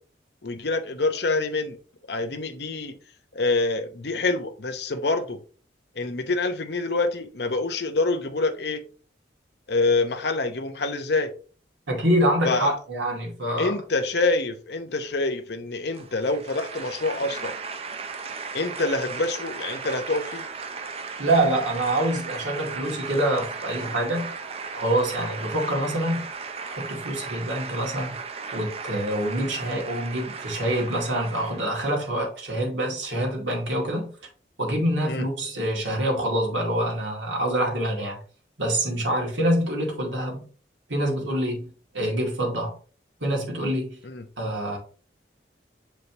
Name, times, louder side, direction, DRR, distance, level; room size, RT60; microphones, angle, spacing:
voice 1, 0.4-1.8 2.1-3.0 3.3-5.4 6.0-8.8 9.7-11.3 12.4-12.7 13.6-17.6 18.5-20.4 35.0-35.3 44.0-44.3, left 3 dB, 65° left, 0.8 m, -26 dB
voice 2, 11.9-13.7 21.2-24.3 24.7-26.3 26.6-28.2 28.5-34.1 34.6-38.2 38.6-40.4 40.9-41.7 41.9-42.7 43.2-44.0 44.4-44.8, right 1 dB, 90° right, 2.2 m, -26 dB
sound 1, 15.9-32.0, right 5 dB, 35° right, 0.5 m, -36 dB
6.6 x 5.0 x 2.9 m
head